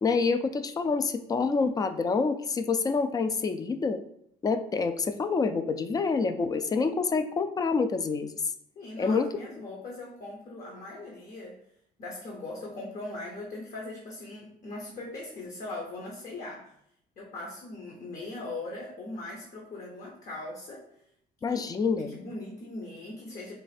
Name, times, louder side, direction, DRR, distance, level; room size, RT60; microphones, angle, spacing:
voice 1, 0.0-4.0 4.4-8.3 9.0-9.3 21.4-22.1, left 4 dB, 20° left, 9 dB, 0.3 m, -27 dB
voice 2, 8.8-11.6 12.0-16.7 17.2-20.9 21.5-21.6 22.0-23.5, left 2 dB, 50° left, -2 dB, 0.9 m, -40 dB
3.9 x 2.5 x 4.1 m, 0.71 s
cardioid pair, 110°, 17 cm